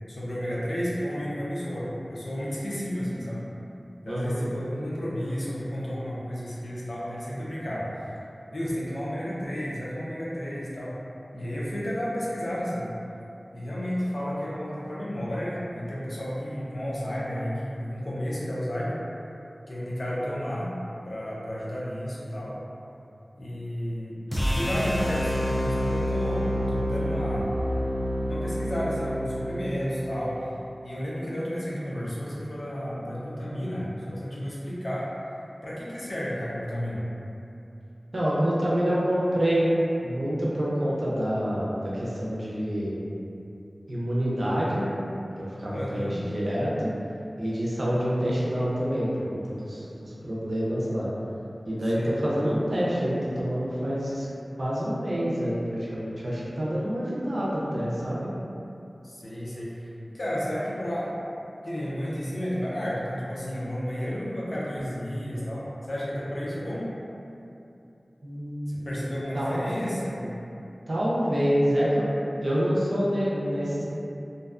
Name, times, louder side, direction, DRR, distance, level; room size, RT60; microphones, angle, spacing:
voice 1, 0.1-3.4 4.0-8.1 8.5-10.9 11.3-12.9 13.5-19.0 19.7-20.7 21.0-22.6 23.4-24.2 24.5-27.5 28.3-30.4 30.8-35.1 35.6-37.1 45.7-46.2 51.9-52.1 59.0-59.9 60.1-61.2 61.6-66.9 68.7-70.3, equal, 65° left, -7 dB, 0.5 m, -32 dB
voice 2, 4.0-4.4 38.1-39.7 40.0-43.0 43.9-44.9 45.4-46.9 47.4-51.1 51.7-54.3 54.6-58.3 68.2-69.0 69.3-69.7 70.9-73.8, equal, 70° right, -7 dB, 0.6 m, -27 dB
sound 1, 24.3-30.5, equal, 20° left, 0.5 m, -28 dB
2.6 x 2.2 x 2.4 m, 2.7 s
wide cardioid pair, 50°, 0 cm